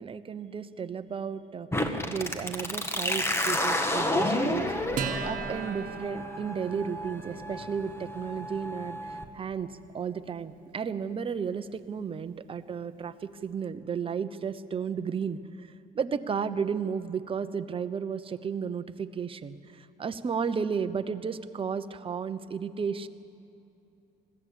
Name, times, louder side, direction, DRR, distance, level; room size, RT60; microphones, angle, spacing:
voice 1, 0.0-4.8 5.2-23.1, right 6 dB, 30° right, 10 dB, 0.9 m, -33 dB
sound 1, 1.7-9.2, left 1 dB, 15° left, 1.6 m, -31 dB
Acoustic guitar, 5.0-11.8, right 6 dB, 55° right, 1.8 m, -40 dB
21.0 x 15.5 x 8.6 m, 2.7 s
cardioid pair, 110°, 17 cm